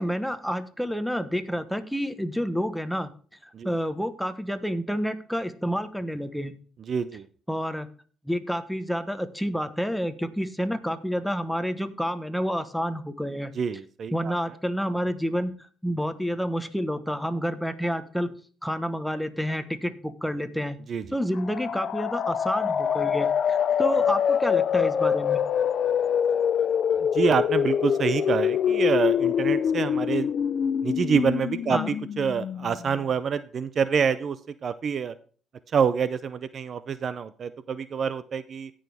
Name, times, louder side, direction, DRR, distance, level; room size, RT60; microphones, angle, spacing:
voice 1, 0.0-3.1 3.6-6.5 7.5-7.9 8.3-13.5 14.1-15.5 15.8-18.3 18.6-20.8 21.1-25.4 31.7-31.9, equal, ahead, 10 dB, 1.2 m, -29 dB
voice 2, 6.9-7.3 13.5-14.4 20.9-21.1 27.0-30.3 30.8-35.1 35.7-38.7, right 6 dB, 50° right, 14 dB, 0.5 m, -27 dB
sound 1, 21.4-33.0, left 8 dB, 55° left, 0.5 m, -25 dB
17.0 x 6.3 x 3.5 m, 0.41 s
cardioid pair, 100°, 0 cm